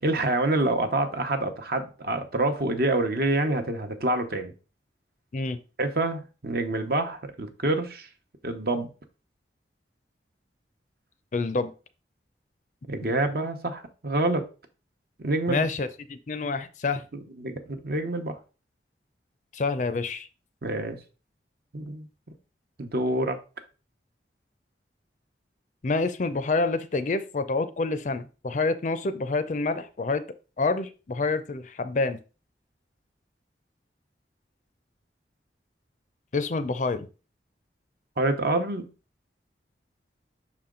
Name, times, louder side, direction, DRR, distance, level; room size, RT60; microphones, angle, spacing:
voice 1, 0.0-4.5 5.8-8.1 8.4-8.9 12.9-14.4 15.2-15.6 17.4-18.4 20.6-21.0 21.7-22.1 22.8-23.4 38.2-38.9, right 2 dB, 60° right, 6 dB, 0.9 m, -27 dB
voice 2, 11.3-11.7 15.5-17.0 19.5-20.3 25.8-30.2 30.6-32.2 36.3-37.1, left 3 dB, 45° left, 12 dB, 0.5 m, -27 dB
6.0 x 4.3 x 3.7 m, 0.33 s
head